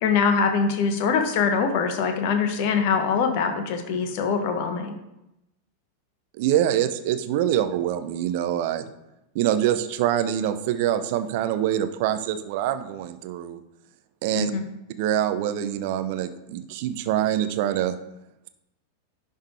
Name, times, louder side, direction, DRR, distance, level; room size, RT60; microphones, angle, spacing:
voice 1, 0.0-4.9 14.3-14.6, left 5 dB, 45° left, 6 dB, 1.0 m, -23 dB
voice 2, 6.4-8.8 9.3-13.6 14.2-14.5 15.0-17.9, right 11 dB, 50° right, 11 dB, 0.6 m, -25 dB
10.5 x 3.7 x 4.2 m, 0.90 s
figure-of-eight pair, 90°, 0 cm